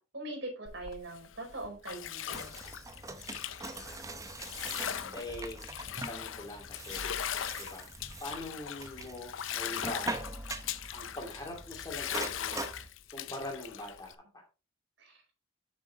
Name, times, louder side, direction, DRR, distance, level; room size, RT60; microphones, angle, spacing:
voice 1, 0.0-2.5 15.0-15.2, right 2 dB, 65° right, 1 dB, 4.8 m, -42 dB
Bathtub (filling or washing), 0.7-14.1, left 9 dB, 75° left, 0.6 m, -40 dB
sound 1, 2.3-12.9, right 2 dB, 15° right, 0.7 m, -43 dB
voice 2, 5.1-5.6 6.1-7.1 7.6-7.9 8.2-10.2 10.9-12.7 13.1-14.4, left 1 dB, 20° left, 1 dB, 2.4 m, -43 dB
8.2 x 6.5 x 3.6 m, 0.31 s
head